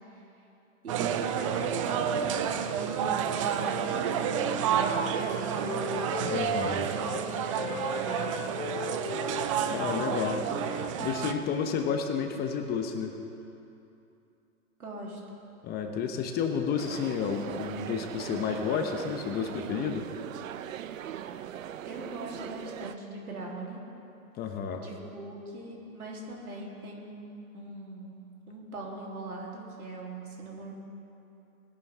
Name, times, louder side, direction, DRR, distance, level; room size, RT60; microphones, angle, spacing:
voice 1, 0.8-8.4 9.5-10.7 14.8-15.2 21.8-23.8 24.8-28.2 28.5-30.7, right 1 dB, 90° right, -3 dB, 3.4 m, -41 dB
sound 1, 0.9-11.3, right 8 dB, 25° right, 0.4 m, -30 dB
Wind instrument woodwind instrument, 3.9-7.2 7.5-11.4, left 6 dB, 85° left, 1.0 m, -39 dB
voice 2, 6.3-6.8 9.7-10.4 11.0-13.1 15.6-20.0 24.4-24.8, left 6 dB, 20° left, 5 dB, 1.0 m, -31 dB
sound 2, 16.8-23.0, right 10 dB, 65° right, 0.7 m, -40 dB
20.0 x 11.0 x 3.6 m, 2.8 s
hypercardioid pair, 130°, 43 cm